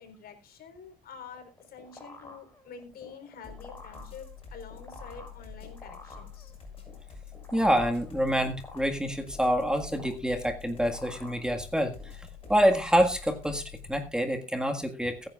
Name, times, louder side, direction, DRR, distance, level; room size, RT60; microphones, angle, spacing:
voice 1, 0.0-6.5, left 6 dB, 65° left, 6 dB, 4.0 m, -47 dB
sound 1, 1.3-13.7, left 2 dB, 15° left, 4.8 m, -50 dB
sound 2, 3.4-14.1, left 7 dB, 35° left, 6.7 m, -47 dB
voice 2, 7.5-11.9 12.2-15.3, equal, 5° right, 5 dB, 1.7 m, -27 dB
22.0 x 9.5 x 2.4 m, 0.26 s
cardioid pair, 110°, 17 cm